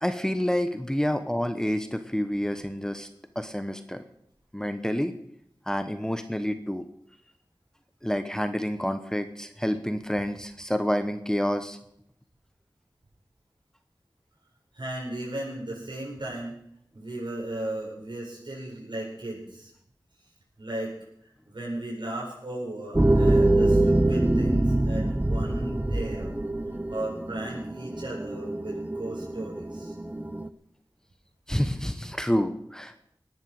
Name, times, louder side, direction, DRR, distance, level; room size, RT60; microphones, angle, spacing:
voice 1, 0.0-3.1 3.3-4.0 4.5-5.1 5.7-6.8 8.0-11.8 31.5-32.9, equal, 5° left, 9 dB, 1.1 m, -28 dB
voice 2, 14.7-16.5 16.9-19.7 20.6-20.9 21.5-26.4 26.9-29.9, right 1 dB, 65° right, -3 dB, 7.9 m, -36 dB
sound 1, 22.9-30.5, right 1 dB, 20° right, 0.9 m, -25 dB
19.0 x 10.5 x 6.6 m, 0.71 s
wide cardioid pair, 60°, 8 cm